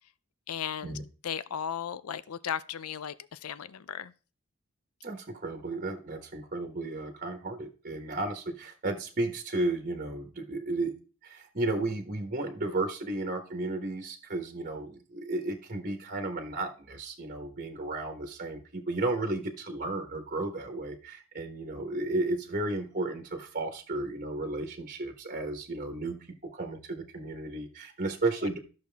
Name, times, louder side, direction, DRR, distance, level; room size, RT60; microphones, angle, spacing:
voice 1, 0.5-0.9 1.2-4.1, left 8 dB, 80° left, 0.5 m, -36 dB
voice 2, 5.0-10.9 11.2-26.1 26.5-28.6, right 2 dB, 40° right, 1.3 m, -33 dB
13.5 x 6.6 x 3.5 m
head